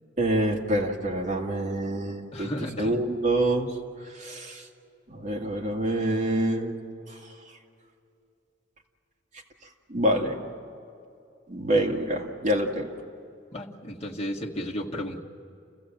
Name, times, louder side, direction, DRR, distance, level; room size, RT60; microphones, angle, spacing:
voice 1, 0.2-3.7 4.0-4.7 5.1-6.7 7.1-7.2 9.9-10.4 11.5-12.9, right 1 dB, 40° right, -1 dB, 2.3 m, -26 dB
voice 2, 2.3-3.0 13.5-15.2, equal, 35° left, -1 dB, 1.8 m, -33 dB
30.0 x 15.5 x 7.7 m, 2.6 s
head